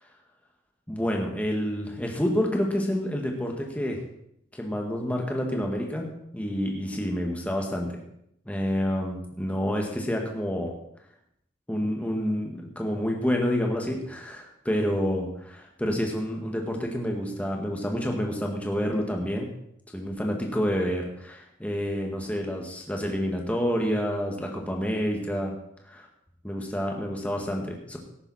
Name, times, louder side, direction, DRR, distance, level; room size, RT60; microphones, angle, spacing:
voice 1, 0.9-4.0 4.5-6.1 6.3-8.0 8.5-10.7 11.7-19.5 19.9-25.5 25.9-26.1 26.4-28.0, equal, 5° left, 1 dB, 1.9 m, -28 dB
18.0 x 9.7 x 4.3 m, 0.73 s
head